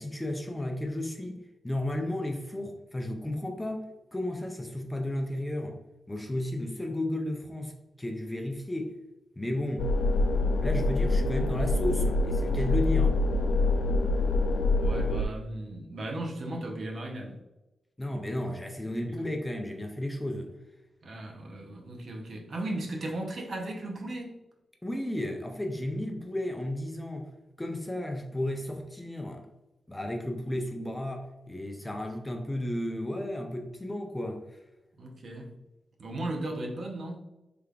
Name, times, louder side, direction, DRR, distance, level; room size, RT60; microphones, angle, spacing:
voice 1, 0.0-5.8 6.1-9.0 9.4-9.9 10.6-13.2 18.0-20.5 24.8-27.3 27.6-29.5 29.9-34.6, left 1 dB, 10° left, 0.4 m, -33 dB
sound 1, 9.8-15.3, left 2 dB, 70° left, 0.4 m, -25 dB
voice 2, 14.8-17.4 19.1-19.2 21.0-24.3 35.0-35.6 36.0-37.2, right 1 dB, 55° right, 0.7 m, -36 dB
3.4 x 3.4 x 2.3 m
wide cardioid pair, 135°, 0 cm